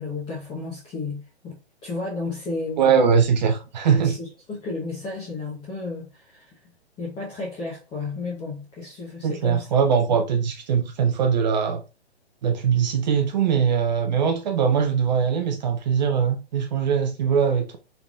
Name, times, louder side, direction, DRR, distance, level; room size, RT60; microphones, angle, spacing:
voice 1, 0.0-1.6 1.8-2.9 3.9-6.5 7.0-9.7, left 3 dB, 15° left, 0.8 m, -33 dB
voice 2, 2.8-4.2 9.2-11.8 12.4-17.8, right 7 dB, 40° right, 0.6 m, -21 dB
3.9 x 3.3 x 2.4 m
hypercardioid pair, 140°, 33 cm